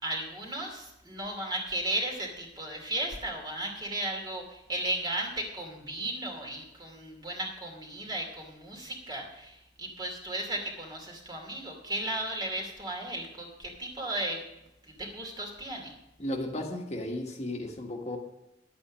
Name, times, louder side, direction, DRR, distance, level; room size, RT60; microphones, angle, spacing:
voice 1, 0.0-14.4 14.9-15.9, right 1 dB, 25° right, 1 dB, 2.7 m, -35 dB
voice 2, 16.2-18.2, left 1 dB, 40° left, 1 dB, 1.5 m, -34 dB
11.0 x 8.6 x 6.2 m, 0.90 s
head